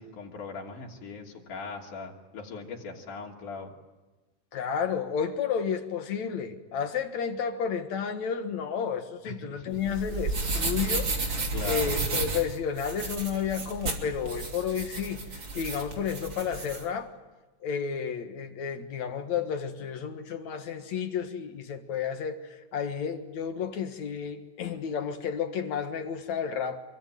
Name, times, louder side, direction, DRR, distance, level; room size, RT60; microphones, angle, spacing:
voice 1, 0.0-3.7 9.2-9.9 11.5-12.0, left 4 dB, 80° left, 4.5 m, -40 dB
voice 2, 4.5-15.2 15.5-17.1 17.6-26.8, left 7 dB, 65° left, 2.8 m, -31 dB
sound 1, 9.7-16.8, right 3 dB, 40° right, 3.6 m, -32 dB
26.5 x 23.5 x 9.3 m
omnidirectional pair, 3.5 m